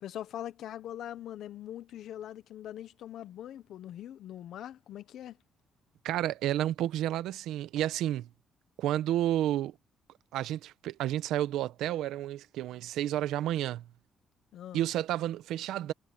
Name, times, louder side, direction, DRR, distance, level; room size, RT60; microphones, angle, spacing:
voice 1, 0.0-5.4 14.5-14.8, left 11 dB, 75° left, 1.0 m, -42 dB
voice 2, 6.0-8.3 8.8-9.8 10.3-13.9 14.7-15.9, right 12 dB, 90° right, 0.9 m, -31 dB
cardioid pair, 90°, 0 cm